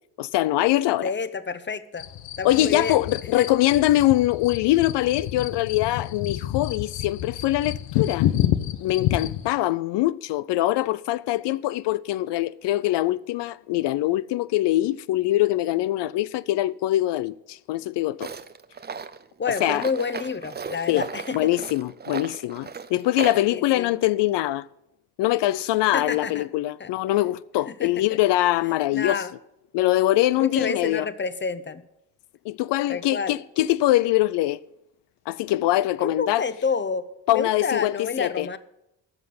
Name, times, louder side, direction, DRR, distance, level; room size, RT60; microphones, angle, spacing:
voice 1, 0.2-1.1 2.4-8.3 8.8-18.3 19.6-19.9 20.9-24.7 25.2-29.2 29.7-31.1 32.4-34.6 35.3-36.4 37.3-38.5, left 15 dB, 75° left, 0.5 m, -23 dB
voice 2, 1.0-2.0 2.4-3.0 3.4-3.5 19.4-21.5 23.5-23.9 25.9-26.4 26.8-26.9 27.7-28.0 28.9-29.3 30.4-31.8 32.9-33.3 36.0-37.0 37.3-38.6, left 5 dB, 25° left, 0.9 m, -29 dB
sound 1, 2.0-9.5, left 12 dB, 90° left, 1.0 m, -29 dB
Tools, 18.2-23.5, right 6 dB, 25° right, 0.6 m, -35 dB
14.0 x 5.9 x 9.4 m
cardioid pair, 90°, 43 cm